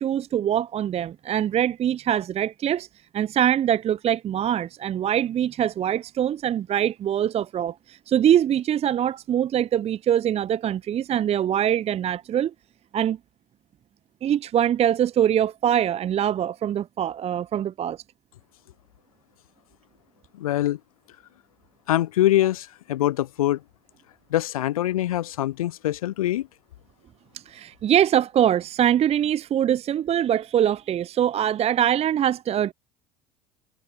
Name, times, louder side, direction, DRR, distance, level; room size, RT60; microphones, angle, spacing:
voice 1, 0.0-2.9 3.1-12.5 12.9-13.2 14.2-18.0 27.5-32.7, right 10 dB, 35° right, 0.7 m, -23 dB
voice 2, 20.3-20.8 21.9-23.6 24.3-26.5, left 14 dB, 70° left, 1.1 m, -24 dB
figure-of-eight pair, 65°, 19 cm